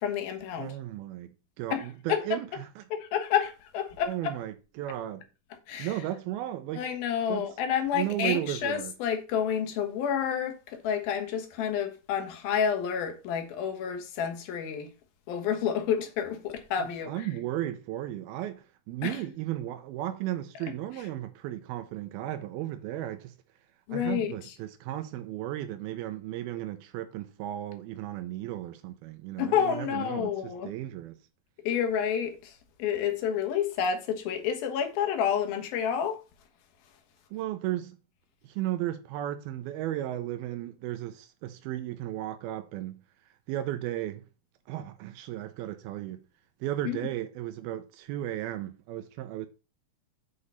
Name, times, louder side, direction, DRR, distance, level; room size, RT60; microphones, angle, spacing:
voice 1, 0.0-0.7 1.7-2.2 2.9-4.4 5.7-5.9 6.8-14.9 15.3-17.3 19.0-19.2 23.9-24.3 29.4-30.7 31.6-36.2 46.8-47.0, left 8 dB, 80° left, 3.1 m, -29 dB
voice 2, 0.6-2.8 4.0-5.3 5.8-6.9 7.3-7.5 7.9-8.9 16.8-23.3 23.9-31.2 37.3-38.0 38.4-43.0 43.5-44.2 44.7-46.2 46.6-49.5, right 13 dB, 90° right, 2.7 m, -35 dB
8.4 x 5.0 x 5.5 m
omnidirectional pair, 4.3 m